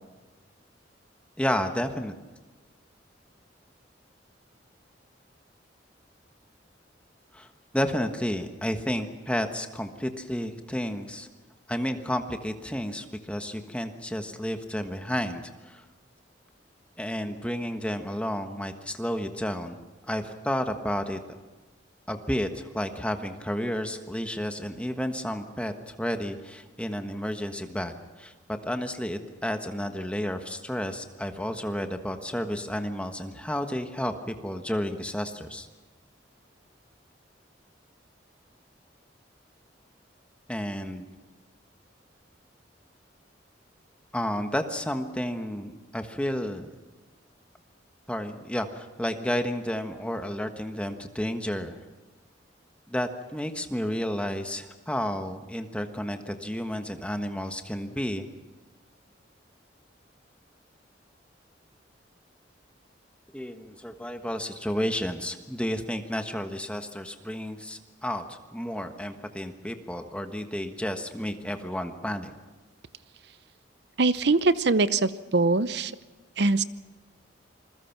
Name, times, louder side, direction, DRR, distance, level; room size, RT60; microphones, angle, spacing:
voice 1, 1.4-2.1 7.3-7.5 7.7-11.3 11.7-15.8 17.0-19.8 20.1-21.2 22.1-35.7 40.5-41.1 44.1-46.8 48.1-51.8 52.9-58.3 63.3-72.3, equal, 5° left, 6 dB, 1.4 m, -31 dB
voice 2, 74.0-75.9 76.4-76.6, right 3 dB, 60° right, 15 dB, 0.8 m, -22 dB
27.5 x 21.0 x 6.0 m, 1.2 s
head